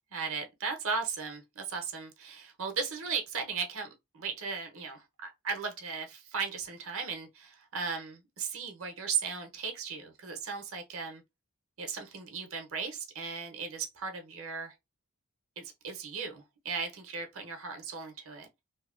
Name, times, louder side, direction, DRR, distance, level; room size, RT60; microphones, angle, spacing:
voice 1, 0.1-11.2 11.8-14.7 15.6-18.5, right 5 dB, 65° right, 0.7 m, -36 dB
2.8 x 2.2 x 2.4 m
head